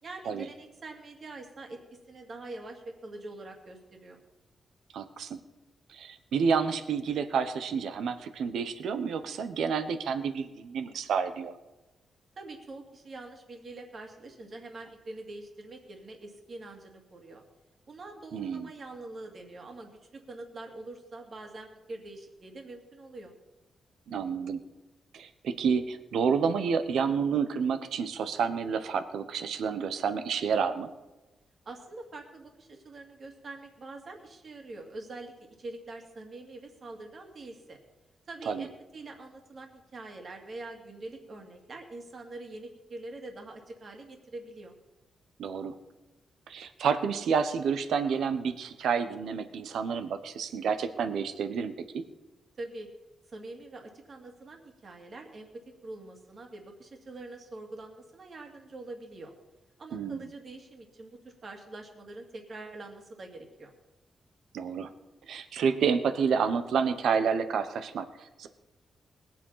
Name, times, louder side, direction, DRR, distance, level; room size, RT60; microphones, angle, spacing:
voice 1, 0.0-1.8 2.1-4.2 12.4-17.4 17.9-23.3 31.7-35.3 35.6-37.8 38.3-44.7 52.6-52.9 53.3-59.3 59.8-63.7, right 2 dB, 40° right, 3 dB, 2.4 m, -44 dB
voice 2, 4.9-5.4 5.9-11.5 18.3-18.7 24.1-24.6 25.1-30.9 38.5-38.7 45.4-45.7 46.5-52.0 59.9-60.3 64.5-64.9 65.3-68.5, right 6 dB, 85° right, 10 dB, 1.1 m, -29 dB
20.5 x 7.6 x 5.7 m, 1.1 s
wide cardioid pair, 150°, 0 cm